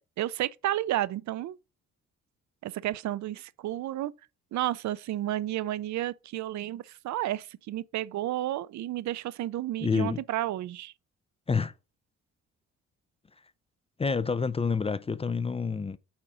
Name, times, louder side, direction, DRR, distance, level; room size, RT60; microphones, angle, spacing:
voice 1, 0.2-1.6 2.6-4.1 4.5-10.9, right 14 dB, 65° right, 0.5 m, -32 dB
voice 2, 9.8-10.2 11.5-11.7 14.0-16.0, left 5 dB, 20° left, 0.4 m, -28 dB
8.7 x 3.6 x 4.9 m
cardioid pair, 90°, 30 cm